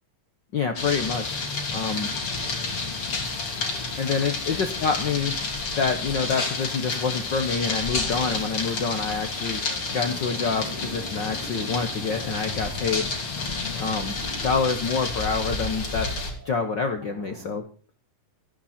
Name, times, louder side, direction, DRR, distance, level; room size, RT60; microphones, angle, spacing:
voice 1, 0.5-1.4 1.7-2.1 4.0-5.3 5.7-9.6 9.9-13.1 13.8-14.1 14.4-16.1 16.4-17.6, left 5 dB, 75° left, 6 dB, 1.0 m, -27 dB
sound 1, 0.8-16.3, left 3 dB, 40° left, 4.0 m, -30 dB
sound 2, 7.6-17.6, right 3 dB, 75° right, 9.2 m, -45 dB
17.0 x 15.0 x 4.3 m, 0.39 s
omnidirectional pair, 3.8 m